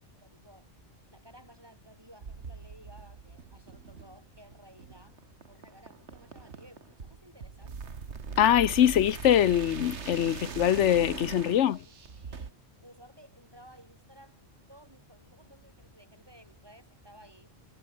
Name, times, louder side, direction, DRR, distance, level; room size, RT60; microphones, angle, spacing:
voice 1, 0.1-0.7 1.1-8.0 11.6-17.5, equal, 20° right, 7.1 m, -56 dB
sound 1, 2.2-12.5, right 5 dB, 75° right, 1.9 m, -42 dB
voice 2, 8.4-11.8, left 10 dB, 85° left, 1.1 m, -23 dB
omnidirectional pair, 1.2 m